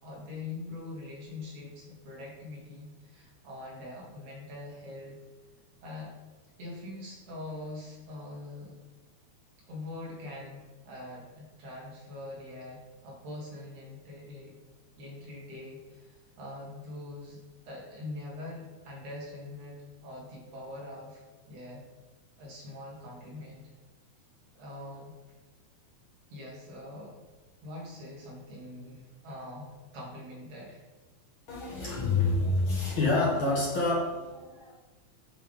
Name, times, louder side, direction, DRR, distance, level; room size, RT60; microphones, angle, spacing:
voice 1, 0.0-5.2 5.8-6.1 6.6-8.8 9.7-14.6 15.0-17.4 17.7-19.8 20.0-21.9 22.4-23.7 24.6-25.1 26.3-27.2 27.6-30.8, left 2 dB, 75° right, -4 dB, 3.2 m, -43 dB
voice 2, 31.5-34.7, left 2 dB, 55° left, -5 dB, 1.8 m, -27 dB
7.5 x 5.6 x 3.5 m, 1.3 s
omnidirectional pair, 3.3 m